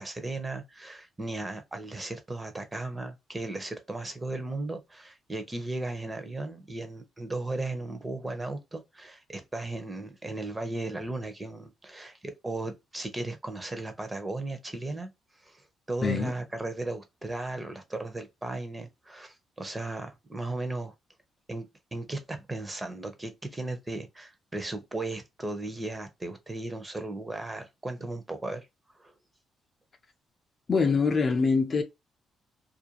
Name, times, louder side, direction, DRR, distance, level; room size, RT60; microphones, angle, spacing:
voice 1, 0.0-15.1 15.4-20.9 21.5-28.7 29.0-29.1, right 2 dB, 20° right, 0.7 m, -36 dB
voice 2, 16.0-16.3 30.7-31.8, left 4 dB, 40° left, 0.5 m, -24 dB
2.5 x 2.2 x 2.8 m
cardioid pair, 90°, 0 cm